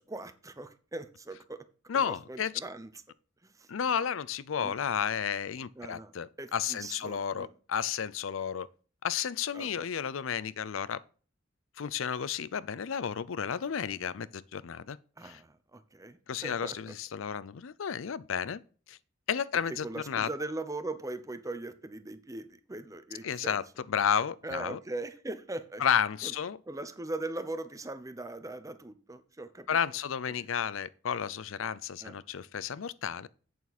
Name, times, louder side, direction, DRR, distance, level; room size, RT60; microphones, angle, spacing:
voice 1, 0.0-1.7 1.9-2.9 3.4-3.7 4.6-4.7 5.8-6.1 6.4-7.5 9.5-10.1 15.2-16.9 19.7-23.6 24.4-25.8 26.2-26.3 26.7-29.7 30.4-30.5 32.0-32.1, right 2 dB, 15° right, 0.8 m, -40 dB
voice 2, 1.9-2.5 3.7-8.7 9.0-11.0 11.8-15.0 15.2-15.4 16.3-18.6 18.9-19.0 19.3-20.3 23.2-24.8 25.8-26.6 29.7-33.3, left 7 dB, 80° left, 0.5 m, -32 dB
8.4 x 7.0 x 4.2 m
head